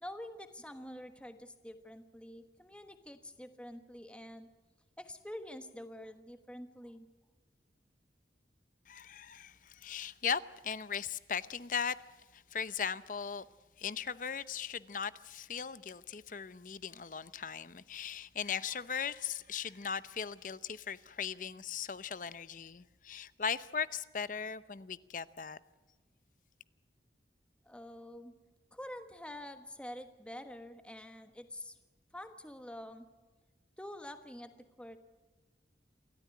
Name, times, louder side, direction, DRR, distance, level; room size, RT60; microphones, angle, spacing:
voice 1, 0.0-4.5 5.0-7.1 27.6-28.3 28.7-31.8 32.1-33.1 33.8-34.5 34.8-35.0, left 1 dB, 5° left, 1.3 m, -47 dB
voice 2, 8.9-12.0 12.3-13.4 13.8-25.6, left 7 dB, 45° left, 0.7 m, -38 dB
28.5 x 14.0 x 9.5 m
head